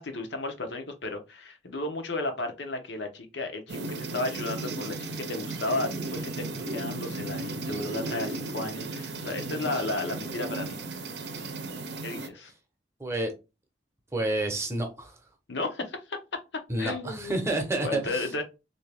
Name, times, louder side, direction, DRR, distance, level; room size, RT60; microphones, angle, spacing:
voice 1, 0.0-10.8 12.0-12.5 15.5-16.2 16.8-18.4, left 2 dB, 75° left, 0.8 m, -34 dB
sound 1, 3.7-12.3, right 2 dB, 70° right, 0.6 m, -35 dB
voice 2, 13.0-13.3 14.1-15.2 16.7-18.4, right 2 dB, 15° right, 0.8 m, -29 dB
3.3 x 2.7 x 3.4 m
head